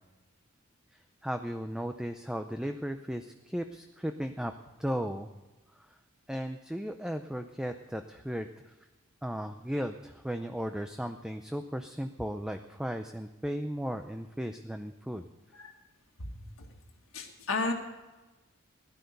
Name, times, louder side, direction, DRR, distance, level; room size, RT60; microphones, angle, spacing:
voice 1, 0.9-4.5 4.8-5.3 5.7-6.0 6.3-8.8 9.2-15.3, equal, 5° right, 6 dB, 0.5 m, -36 dB
voice 2, 17.1-17.7, left 3 dB, 70° left, 2 dB, 1.7 m, -32 dB
16.5 x 12.0 x 6.7 m, 1.2 s
head